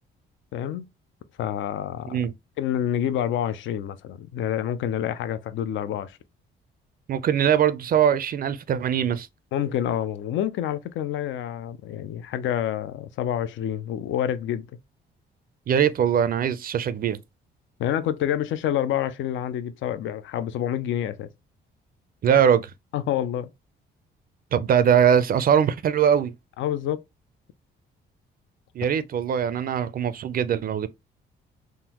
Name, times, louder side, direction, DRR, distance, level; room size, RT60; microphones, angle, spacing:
voice 1, 0.5-0.9 1.4-2.3 2.6-6.2 9.5-14.7 17.8-21.3 22.3-22.4 22.9-23.5 26.6-27.0, left 10 dB, 75° left, 0.4 m, -28 dB
voice 2, 7.1-9.3 15.7-17.2 22.2-22.7 24.5-26.3 28.8-30.9, right 8 dB, 50° right, 0.4 m, -21 dB
3.6 x 2.1 x 2.8 m
cardioid pair, 90°, 20 cm